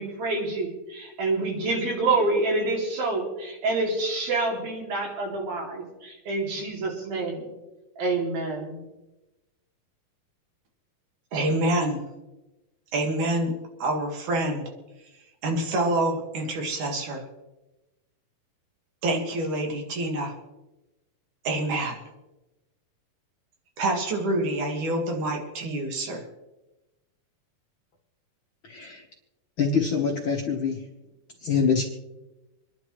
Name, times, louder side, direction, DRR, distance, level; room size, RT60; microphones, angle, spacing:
voice 1, 0.0-7.5 8.0-8.8, right 3 dB, 90° right, -1 dB, 4.6 m, -27 dB
voice 2, 11.3-12.1 12.9-14.7 15.4-17.2 19.0-20.3 21.4-22.0 23.8-26.2, right 1 dB, 60° right, 1 dB, 3.3 m, -27 dB
voice 3, 28.6-29.0 29.6-30.8 31.4-31.8, left 5 dB, 75° left, 0 dB, 1.1 m, -25 dB
27.0 x 10.5 x 3.2 m, 1.0 s
omnidirectional pair, 4.1 m